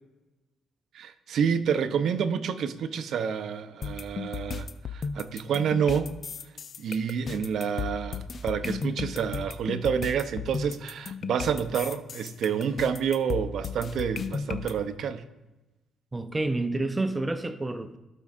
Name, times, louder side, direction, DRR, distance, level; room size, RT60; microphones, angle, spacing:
voice 1, 0.9-6.1 6.8-15.2, right 7 dB, 70° right, 0.6 m, -28 dB
sound 1, 3.8-14.7, left 5 dB, 45° left, 0.5 m, -35 dB
voice 2, 16.1-18.0, right 2 dB, 20° right, 0.7 m, -29 dB
15.5 x 5.3 x 2.5 m
cardioid pair, 90°, 0 cm